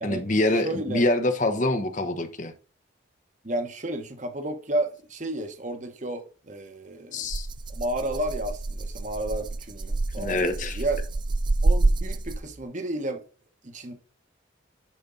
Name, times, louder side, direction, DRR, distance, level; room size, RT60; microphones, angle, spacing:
voice 1, 0.0-2.5 7.1-7.5 10.2-10.8, left 2 dB, 40° left, 1.1 m, -25 dB
voice 2, 0.6-1.0 3.4-7.3 7.7-10.5 10.7-11.0 11.6-13.2 13.6-13.9, right 1 dB, 40° right, 1.1 m, -32 dB
Rattle (instrument), 7.3-12.6, right 2 dB, 25° right, 0.3 m, -27 dB
10.5 x 4.3 x 3.9 m
head